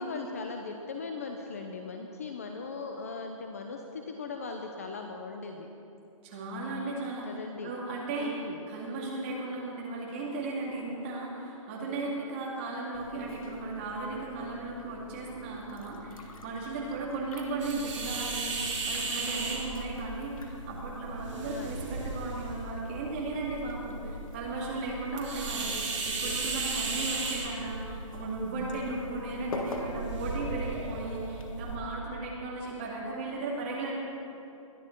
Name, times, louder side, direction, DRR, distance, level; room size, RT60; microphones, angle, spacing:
voice 1, 0.0-5.7 7.3-7.7 8.2-8.6 21.4-21.8, left 4 dB, 25° left, 4 dB, 0.7 m, -39 dB
voice 2, 6.2-8.3 8.7-33.9, right 2 dB, 20° right, -4 dB, 2.2 m, -36 dB
sound 1, 12.9-31.5, left 3 dB, 80° left, 2.2 m, -47 dB
sound 2, 17.6-31.8, right 3 dB, 60° right, 3.2 m, -36 dB
21.5 x 12.0 x 4.5 m, 2.8 s
hypercardioid pair, 180°, 17 cm